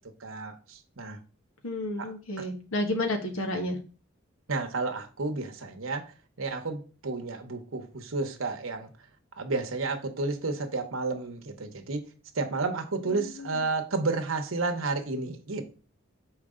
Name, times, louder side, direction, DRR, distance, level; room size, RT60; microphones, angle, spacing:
voice 1, 0.2-1.2 2.0-2.1 2.4-2.5 4.5-6.1 6.4-8.9 9.4-12.0 12.3-15.6, right 3 dB, 75° right, 1.0 m, -31 dB
voice 2, 1.6-3.8 13.1-13.7, left 1 dB, 85° left, 1.4 m, -31 dB
6.5 x 4.7 x 3.7 m
head